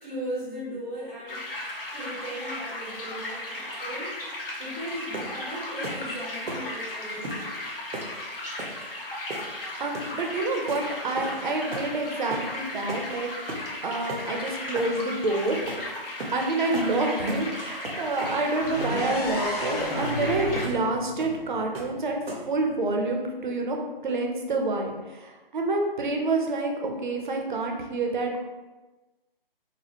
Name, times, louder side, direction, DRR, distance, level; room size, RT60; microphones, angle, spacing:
voice 1, 0.0-4.2 4.6-7.5, equal, 5° left, -13 dB, 0.5 m, -37 dB
sound 1, 1.3-20.7, left 1 dB, 65° left, 1.0 m, -36 dB
sound 2, 5.1-5.4 5.8-6.0 6.5-6.7 7.2-7.4 7.9-8.1 8.6-8.8 9.3-9.6 9.9-10.2 10.7-10.8 11.2-11.4 11.7-11.9 12.3-12.5 12.9-13.1 13.5-13.7 14.1-14.3 14.7-14.9 15.7-15.8 16.2-16.4 16.7-16.9 17.3-17.5 17.8-18.4 18.8-19.0 19.4-19.5 20.0-20.1 20.5-20.8 21.2-21.4 21.7-22.0 22.3-22.5, right 2 dB, 85° right, 0.8 m, -36 dB
voice 2, 9.8-13.3 13.8-15.6 16.3-22.2 22.5-23.8 24.0-28.4, right 2 dB, 55° right, 2 dB, 0.7 m, -28 dB
sound 3, 18.6-22.4, left 1 dB, 40° left, 0.7 m, -33 dB
4.1 x 2.1 x 2.9 m, 1.2 s
figure-of-eight pair, 150°, 30 cm